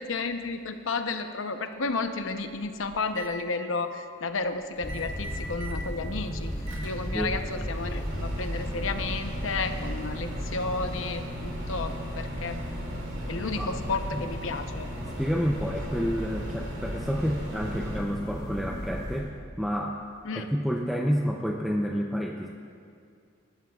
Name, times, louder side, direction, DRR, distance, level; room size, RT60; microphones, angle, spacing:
voice 1, 0.0-6.5 6.8-12.6 13.3-14.9 20.3-20.5, left 3 dB, 80° left, 7 dB, 0.8 m, -32 dB
Microwave oven, 2.3-3.3 4.8-5.9 6.2-18.0, equal, 65° right, 2.2 m, -40 dB
sound 1, 4.8-19.2, equal, 20° left, 2.5 m, -35 dB
voice 2, 15.2-20.0 20.3-22.5, equal, ahead, -1 dB, 0.5 m, -29 dB
21.5 x 13.0 x 2.4 m, 2.3 s
head